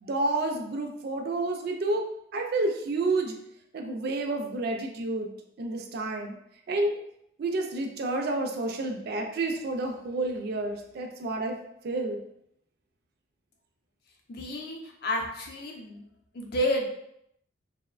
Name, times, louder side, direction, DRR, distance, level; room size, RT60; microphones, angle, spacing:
voice 1, 0.0-2.0 2.3-3.4 3.7-5.3 5.6-6.4 6.7-7.0 7.4-11.6 11.8-12.2, right 2 dB, 50° right, 3 dB, 0.3 m, -29 dB
voice 2, 14.3-16.0 16.3-16.9, left 1 dB, 50° left, 1 dB, 0.4 m, -30 dB
2.8 x 2.0 x 2.3 m, 0.75 s
head